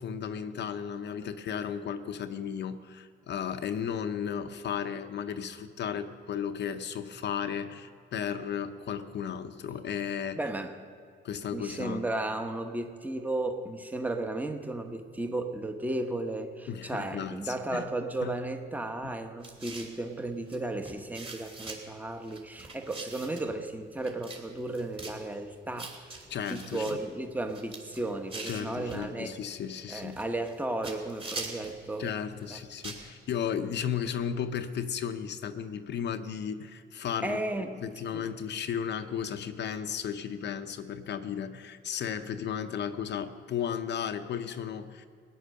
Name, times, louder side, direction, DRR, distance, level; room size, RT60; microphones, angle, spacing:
voice 1, 0.0-10.4 11.2-12.1 16.7-17.8 18.2-18.3 19.0-19.1 26.3-27.0 28.5-30.2 32.0-37.4 37.8-45.1, left 8 dB, 60° left, 8 dB, 0.7 m, -34 dB
voice 2, 10.3-10.8 11.5-26.2 26.5-29.3 29.9-32.1 32.5-32.6 37.2-37.8 38.1-38.3, right 2 dB, 10° right, 6 dB, 1.1 m, -34 dB
sound 1, 19.4-20.0 20.5-20.6 20.9-21.8 22.3-23.5 24.0-24.4 24.7-25.2 25.8-26.9 27.4-29.1 29.9-30.6 30.8-31.8 32.4-33.0, right 3 dB, 25° right, 2.9 m, -42 dB
17.0 x 9.5 x 6.5 m, 2.2 s
cardioid pair, 90°, 20 cm